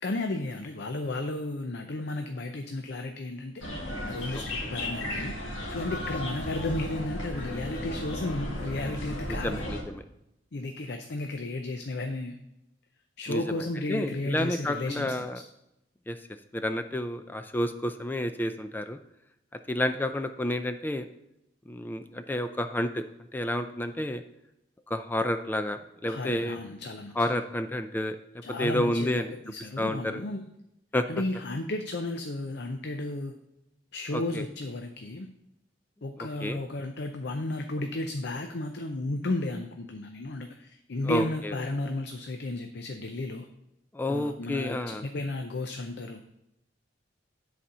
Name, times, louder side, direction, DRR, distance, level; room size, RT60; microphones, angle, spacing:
voice 1, 0.0-3.6 4.1-9.6 10.5-12.4 13.2-15.4 26.0-27.1 28.4-30.5 31.1-33.4 33.9-35.3 36.0-43.5 44.1-46.2, left 2 dB, 60° left, 6 dB, 0.6 m, -33 dB
sound 1, 3.6-9.8, left 1 dB, 90° left, 1.9 m, -35 dB
voice 2, 4.3-4.7 9.3-10.0 13.3-13.4 13.9-15.4 16.1-16.2 16.5-19.0 19.7-21.1 21.7-23.0 23.3-24.2 24.9-26.6 27.2-28.2 28.6-29.3 29.8-30.2 30.9-31.0 34.1-34.4 36.4-36.6 41.1-41.5 43.9-45.0, left 1 dB, 10° left, 8 dB, 0.3 m, -30 dB
10.0 x 4.2 x 5.4 m, 0.86 s
head